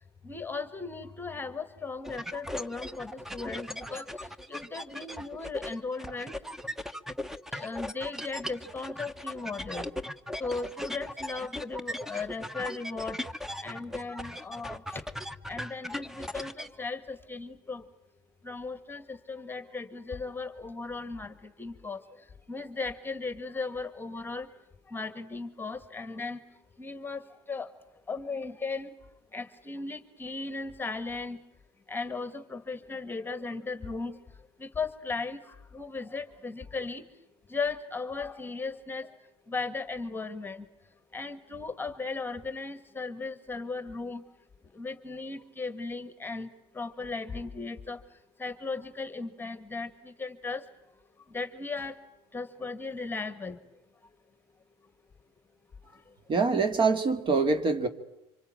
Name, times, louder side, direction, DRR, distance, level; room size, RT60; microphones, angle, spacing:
voice 1, 0.2-4.1 4.5-6.3 7.5-9.9 10.4-13.2 13.6-15.1 15.5-17.8 18.4-22.0 22.5-24.5 24.9-26.4 26.8-27.7 28.1-28.9 29.3-31.4 31.9-34.2 34.6-37.0 37.5-39.1 39.5-40.7 41.1-44.2 44.7-46.5 46.7-48.0 48.4-50.7 51.3-52.0 52.3-53.6 55.8-56.0, left 4 dB, 15° left, 11 dB, 1.8 m, -37 dB
sound 1, 2.0-16.7, left 1 dB, 5° right, 1.0 m, -38 dB
voice 2, 56.3-57.9, right 4 dB, 35° right, 9 dB, 2.4 m, -24 dB
25.5 x 24.5 x 9.0 m, 0.90 s
supercardioid pair, 95°, 14 cm